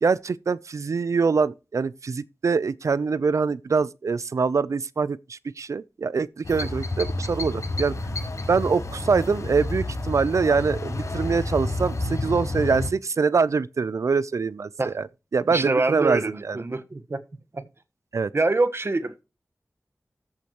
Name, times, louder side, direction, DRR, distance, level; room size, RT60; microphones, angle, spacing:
voice 1, 0.0-7.9 8.5-15.1 15.3-16.6 18.1-18.3, right 5 dB, 90° right, 0.6 m, -24 dB
sound 1, 6.4-12.9, left 2 dB, 90° left, 5.2 m, -30 dB
voice 2, 15.5-17.2 17.5-17.6 18.3-19.2, right 3 dB, 55° right, 1.3 m, -25 dB
14.5 x 8.5 x 3.0 m
wide cardioid pair, 60°, 5 cm